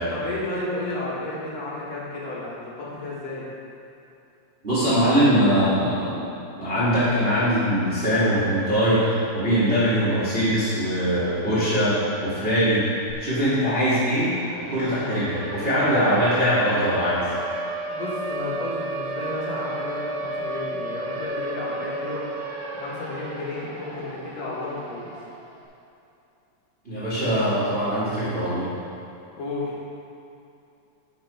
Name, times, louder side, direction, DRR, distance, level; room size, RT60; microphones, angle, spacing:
voice 1, 0.1-3.5 17.9-22.3 22.7-25.1 29.4-29.7, left 2 dB, 65° left, -6 dB, 2.8 m, -32 dB
voice 2, 4.6-6.3 6.6-12.8 13.2-14.3 14.7-17.2 26.8-28.7, equal, 20° right, -10 dB, 1.8 m, -22 dB
Siren, 13.1-13.2 13.5-25.5, right 2 dB, 55° right, 2.4 m, -33 dB
11.5 x 5.6 x 4.8 m, 2.7 s
omnidirectional pair, 3.4 m